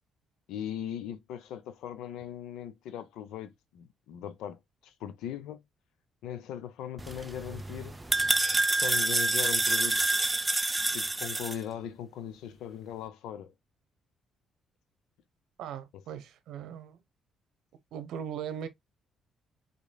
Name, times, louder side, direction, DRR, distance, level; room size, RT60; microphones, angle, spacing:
voice 1, 0.5-5.6 6.2-8.0 8.7-10.0 10.9-13.5 15.9-16.0, left 10 dB, 85° left, 0.8 m, -39 dB
sound 1, 7.0-11.6, right 2 dB, 15° right, 0.5 m, -27 dB
voice 2, 15.6-17.0 17.9-18.7, right 8 dB, 80° right, 0.9 m, -39 dB
5.3 x 4.0 x 2.3 m
cardioid pair, 115°, 0 cm